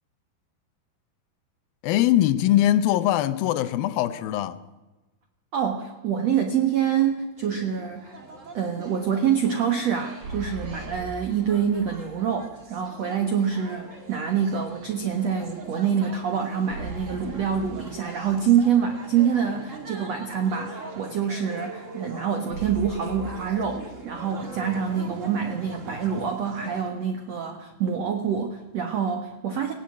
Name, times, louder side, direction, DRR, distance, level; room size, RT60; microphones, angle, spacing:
voice 1, 1.8-4.6, left 13 dB, 80° left, 2.1 m, -22 dB
voice 2, 5.5-8.2 8.5-29.7, right 8 dB, 80° right, 1.5 m, -26 dB
sound 1, 7.4-26.9, right 2 dB, 40° right, 1.0 m, -42 dB
sound 2, 10.2-12.2 12.6-12.7 16.7-18.7 22.5-24.5, right 1 dB, 60° right, 4.5 m, -40 dB
18.5 x 18.0 x 8.3 m
omnidirectional pair, 5.2 m